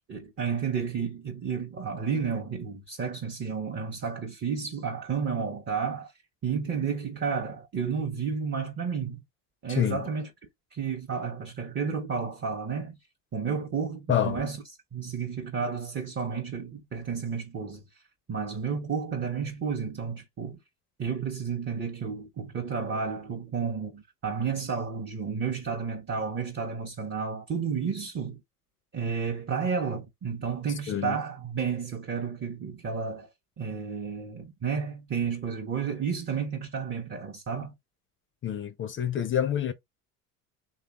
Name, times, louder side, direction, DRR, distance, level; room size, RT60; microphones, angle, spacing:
voice 1, 0.1-6.1 6.4-9.2 9.6-10.3 10.7-13.0 13.3-14.6 14.9-17.8 18.3-20.6 21.0-28.4 28.9-33.3 33.6-37.8, right 6 dB, 25° right, 0.7 m, -31 dB
voice 2, 9.7-10.0 14.1-14.4 30.9-31.2 38.4-39.7, left 10 dB, 30° left, 0.5 m, -27 dB
3.2 x 2.3 x 2.8 m
hypercardioid pair, 75°, 44 cm